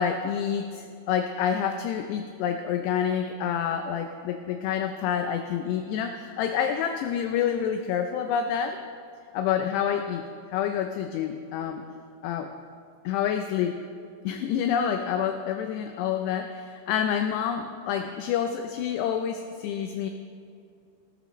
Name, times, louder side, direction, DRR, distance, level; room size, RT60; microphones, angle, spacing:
voice 1, 0.0-8.8 9.3-10.3 10.5-11.8 12.2-12.5 13.1-13.8 14.2-20.1, left 8 dB, 85° left, 6 dB, 2.5 m, -28 dB
18.5 x 13.5 x 3.1 m, 2.3 s
omnidirectional pair, 5.4 m